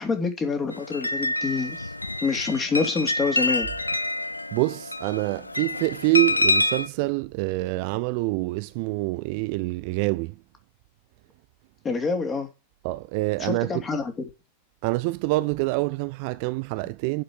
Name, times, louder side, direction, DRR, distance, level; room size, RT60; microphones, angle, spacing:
voice 1, 0.0-1.9 2.2-3.7 11.8-12.5 13.4-14.3, left 4 dB, 20° left, 3.0 m, -27 dB
sound 1, 0.7-6.9, left 2 dB, 85° left, 0.5 m, -27 dB
voice 2, 4.5-10.3 12.8-13.8 14.8-17.2, right 22 dB, 45° right, 0.5 m, -26 dB
10.5 x 5.5 x 6.3 m
figure-of-eight pair, 90°, 0 cm